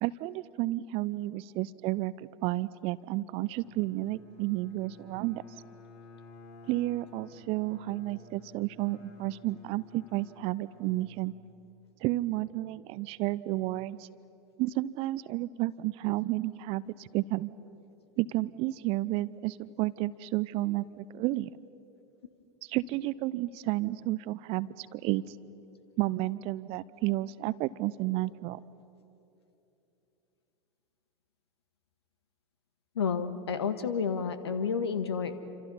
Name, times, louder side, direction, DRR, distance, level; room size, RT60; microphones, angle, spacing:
voice 1, 0.0-5.4 6.7-11.3 12.0-14.1 14.6-17.5 18.2-21.5 22.6-25.4 26.0-28.6, right 17 dB, 45° right, 18 dB, 0.6 m, -31 dB
Bowed string instrument, 3.4-11.9, left 2 dB, 45° left, 4.8 m, -54 dB
voice 2, 32.9-35.4, left 6 dB, 70° left, 11 dB, 1.5 m, -30 dB
27.5 x 26.5 x 5.6 m, 2.9 s
figure-of-eight pair, 85°, 14 cm